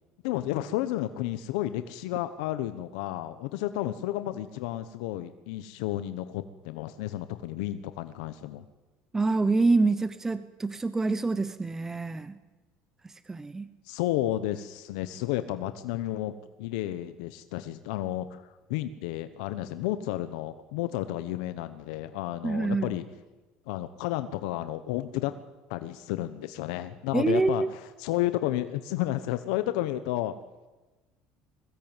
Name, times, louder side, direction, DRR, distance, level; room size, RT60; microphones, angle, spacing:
voice 1, 0.2-8.6 13.8-23.0 23.7-25.3 25.7-30.3, left 14 dB, 85° left, 11 dB, 1.1 m, -32 dB
voice 2, 9.1-12.4 13.0-13.7 22.4-23.0 27.1-27.7, right 3 dB, 15° right, 13 dB, 0.9 m, -26 dB
21.5 x 17.0 x 9.1 m, 1.2 s
cardioid pair, 135°, 3 cm